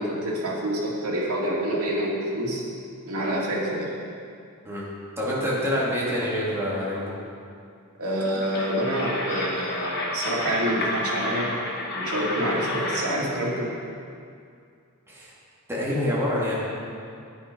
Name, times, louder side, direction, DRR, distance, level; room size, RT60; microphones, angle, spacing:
voice 1, 0.0-2.6 3.1-3.9 8.0-11.5 11.9-13.7, right 1 dB, 80° right, -4 dB, 2.5 m, -27 dB
voice 2, 5.2-7.1 15.1-15.3 15.7-16.5, left 1 dB, 10° right, -7 dB, 2.6 m, -26 dB
sound 1, 8.2-13.2, left 1 dB, 45° left, 1.8 m, -30 dB
10.0 x 9.2 x 5.4 m, 2.4 s
head